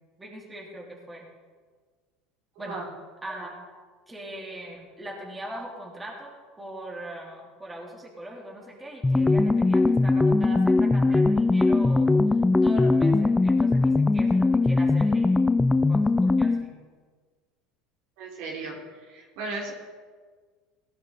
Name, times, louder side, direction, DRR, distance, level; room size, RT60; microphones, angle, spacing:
voice 1, 0.2-1.2 2.6-2.8 3.2-3.6 4.1-6.3 6.6-12.1 12.6-15.4 15.9-16.8, right 1 dB, 15° right, -2 dB, 3.6 m, -40 dB
sound 1, 9.0-16.7, left 3 dB, 10° left, 0.5 m, -21 dB
voice 2, 18.2-18.7 19.1-19.7, right 3 dB, 70° right, -1 dB, 3.1 m, -35 dB
18.0 x 9.5 x 4.3 m, 1.5 s
hypercardioid pair, 90°, 0 cm